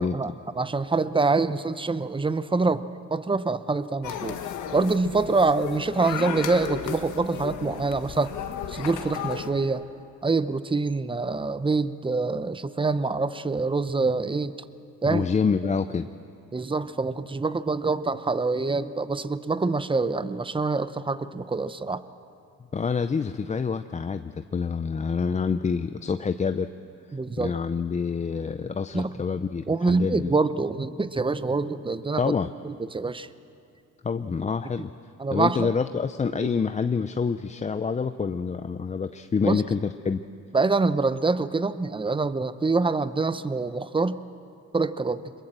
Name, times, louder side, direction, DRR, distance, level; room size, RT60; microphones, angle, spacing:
voice 1, 0.0-2.8 3.1-4.4 4.7-8.3 8.7-9.8 10.2-14.5 15.0-15.3 16.5-22.0 27.1-27.5 28.9-29.1 29.7-32.2 32.6-33.3 35.2-35.7 36.4-36.5 39.4-39.6 40.5-44.2 44.7-45.3, right 3 dB, 15° right, 14 dB, 0.7 m, -25 dB
sound 1, 4.0-9.5, left 8 dB, 85° left, 1.6 m, -34 dB
voice 2, 15.1-16.1 22.7-26.7 27.4-30.3 32.2-32.5 34.0-34.9 35.3-40.2, left 5 dB, 25° left, 10 dB, 0.5 m, -27 dB
23.0 x 21.5 x 7.5 m, 2.6 s
cardioid pair, 90°, 30 cm